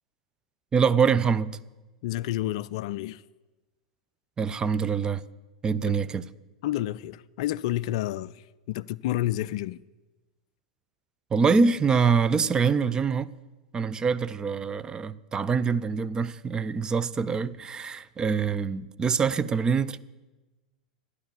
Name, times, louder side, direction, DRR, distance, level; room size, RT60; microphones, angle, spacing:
voice 1, 0.7-1.6 4.4-5.2 5.6-6.2 11.3-13.3 13.7-20.0, right 5 dB, 20° right, 0.5 m, -24 dB
voice 2, 2.0-3.2 6.6-9.8, left 14 dB, 55° left, 0.4 m, -30 dB
12.5 x 9.8 x 7.0 m
figure-of-eight pair, 90°, 4 cm